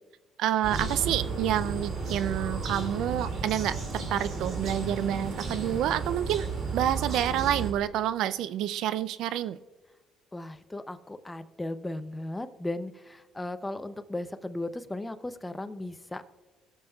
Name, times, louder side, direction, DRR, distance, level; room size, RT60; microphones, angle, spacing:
voice 1, 0.4-6.5 6.7-9.6, right 11 dB, 80° right, 15 dB, 0.3 m, -28 dB
sound 1, 0.6-7.7, right 4 dB, 60° right, 2.6 m, -33 dB
voice 2, 10.3-16.4, left 1 dB, 15° left, 11 dB, 0.6 m, -36 dB
17.5 x 7.0 x 2.3 m, 1.3 s
cardioid pair, 95°, 0 cm